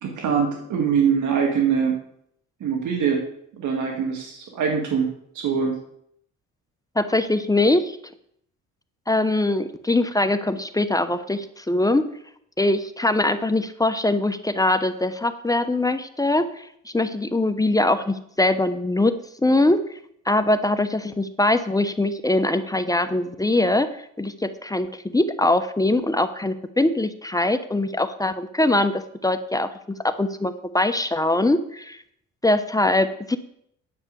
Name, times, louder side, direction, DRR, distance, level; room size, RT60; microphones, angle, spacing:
voice 1, 0.0-2.0 2.6-3.3 3.5-5.8, right 6 dB, 80° right, 2 dB, 2.3 m, -23 dB
voice 2, 7.0-8.0 9.1-12.1 12.6-16.7 16.9-19.1 19.4-19.8 20.3-32.0 32.4-33.4, left 2 dB, 10° left, 10 dB, 0.9 m, -22 dB
10.0 x 6.6 x 8.2 m, 0.70 s
cardioid pair, 90°, 30 cm